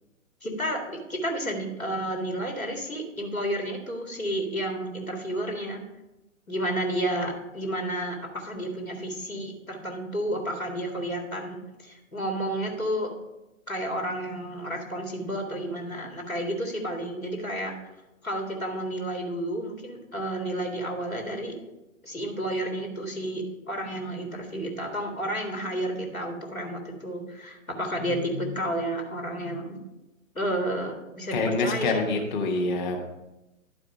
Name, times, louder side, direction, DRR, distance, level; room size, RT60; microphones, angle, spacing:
voice 1, 0.4-5.8 6.5-13.1 13.7-17.8 18.2-21.6 22.0-29.7 30.3-32.0, right 1 dB, 90° left, 2 dB, 2.1 m, -31 dB
voice 2, 31.3-33.0, left 3 dB, 35° left, 1 dB, 1.1 m, -26 dB
11.0 x 4.8 x 5.2 m, 0.98 s
figure-of-eight pair, 125°, 41 cm